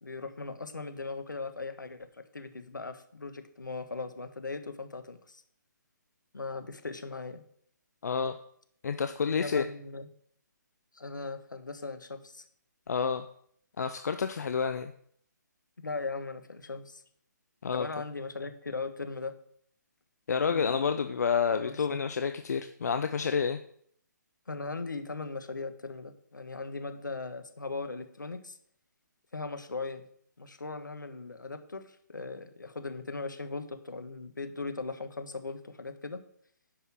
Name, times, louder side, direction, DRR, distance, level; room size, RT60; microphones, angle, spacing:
voice 1, 0.0-2.1 2.3-5.4 6.3-7.4 9.3-10.1 10.9-12.4 15.8-17.0 17.7-19.3 20.5-20.9 21.6-22.0 24.5-28.6 29.3-30.0 30.4-36.2, left 3 dB, 80° left, 9 dB, 1.5 m, -39 dB
voice 2, 8.0-8.4 8.8-9.6 12.9-13.2 13.8-14.9 17.6-17.9 20.3-23.6, left 6 dB, 60° left, 9 dB, 0.6 m, -29 dB
10.0 x 5.7 x 6.3 m, 0.63 s
figure-of-eight pair, 140°, 10 cm